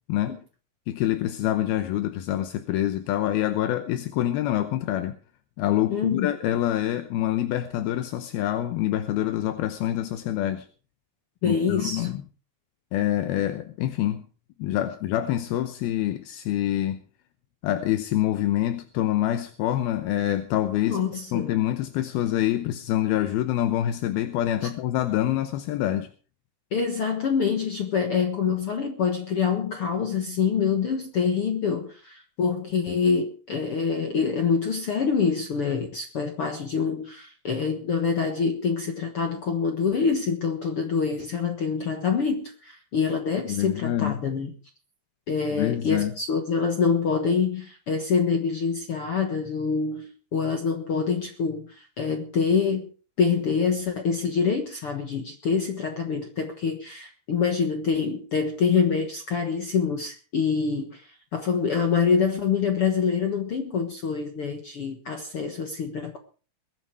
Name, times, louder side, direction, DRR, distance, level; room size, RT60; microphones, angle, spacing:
voice 1, 0.9-5.2 5.6-10.7 11.4-12.2 12.9-14.2 14.6-17.0 17.6-21.0 21.3-26.1 43.5-44.2 45.5-46.1, left 13 dB, 80° left, 2.7 m, -26 dB
voice 2, 5.9-6.3 11.4-12.1 20.9-21.5 26.7-44.5 45.3-52.9 53.2-66.2, left 6 dB, 60° left, 1.5 m, -26 dB
22.5 x 9.3 x 4.8 m
omnidirectional pair, 4.6 m